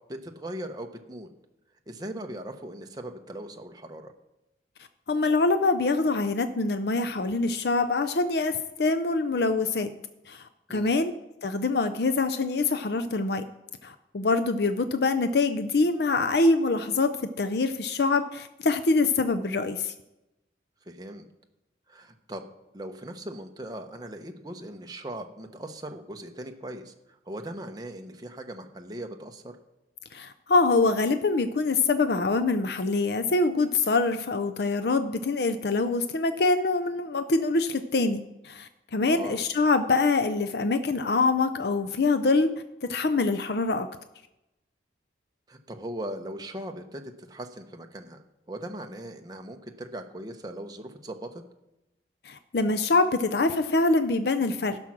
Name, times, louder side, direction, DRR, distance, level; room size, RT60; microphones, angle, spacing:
voice 1, 0.1-1.3 1.9-4.1 10.7-10.9 20.9-21.3 21.9-22.4 22.7-29.5 39.1-39.4 45.5-51.4, right 1 dB, 20° right, 4 dB, 0.9 m, -39 dB
voice 2, 5.1-9.9 10.3-11.1 11.4-13.4 13.8-17.1 17.4-19.9 30.1-42.5 42.9-43.9 52.2-54.8, left 3 dB, 60° left, 9 dB, 0.6 m, -25 dB
15.0 x 6.2 x 6.0 m, 0.95 s
head